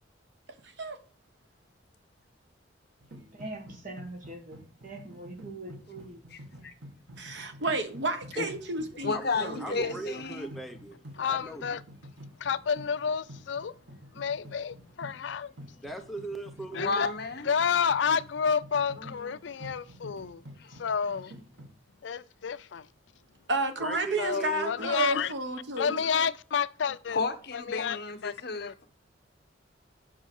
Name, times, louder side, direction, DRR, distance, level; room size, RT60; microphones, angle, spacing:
voice 1, 0.6-1.0 7.2-9.8 23.5-26.0, right 2 dB, 65° right, 1.2 m, -31 dB
sound 1, 3.0-21.7, equal, 85° right, 2.1 m, -49 dB
voice 2, 3.4-6.2, right 2 dB, 45° right, 1.7 m, -42 dB
voice 3, 6.3-6.7 8.3-8.5 9.0-10.5 16.7-17.5 19.0-19.3 20.6-20.8 27.1-28.8, left 4 dB, 55° left, 1.2 m, -33 dB
voice 4, 9.1-11.6 15.8-17.1 23.8-24.9, right 2 dB, ahead, 0.8 m, -39 dB
voice 5, 11.2-11.8 12.4-13.7 14.1-15.5 16.7-17.1 17.4-20.4 20.7-21.3 22.0-22.9 24.2-25.3 25.8-27.2 27.5-28.3 28.6-28.7, left 6 dB, 70° left, 0.5 m, -30 dB
7.3 x 5.6 x 5.4 m
head